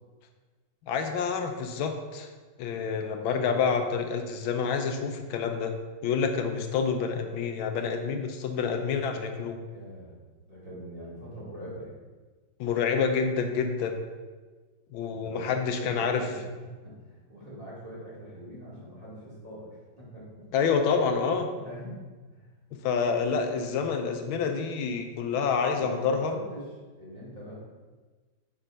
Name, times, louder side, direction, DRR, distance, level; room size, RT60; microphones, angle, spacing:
voice 1, 0.9-2.3 2.6-5.7 6.0-9.6 12.6-14.0 14.9-16.3 20.5-21.5 22.7-26.3, left 5 dB, 85° left, 5 dB, 1.5 m, -28 dB
voice 2, 9.7-10.2 10.5-12.0 15.0-20.5 21.5-22.0 22.3-22.4 25.7-27.5, equal, 20° right, -8 dB, 2.3 m, -42 dB
6.9 x 4.2 x 5.0 m, 1.3 s
omnidirectional pair, 2.2 m